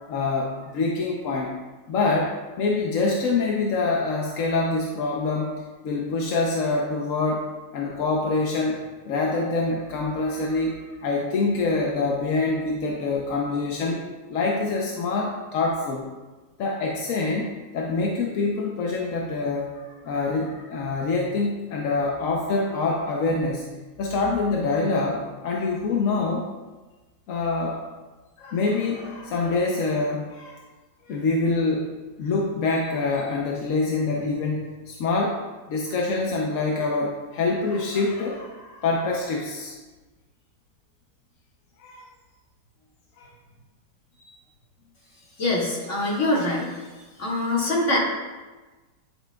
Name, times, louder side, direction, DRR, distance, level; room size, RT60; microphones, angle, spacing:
voice 1, 0.0-1.5 1.9-5.5 5.8-7.5 7.7-14.0 14.3-16.1 16.6-17.5 17.7-23.7 24.0-26.5 27.3-27.8 28.4-30.6 31.0-35.4 35.7-39.7 41.8-42.0 43.2-43.3 44.1-44.4, left 3 dB, 60° left, -1 dB, 1.0 m, -25 dB
voice 2, 45.4-46.7 47.2-48.0, left 2 dB, 45° left, -5 dB, 2.3 m, -24 dB
10.0 x 7.6 x 2.3 m, 1.2 s
omnidirectional pair, 1.9 m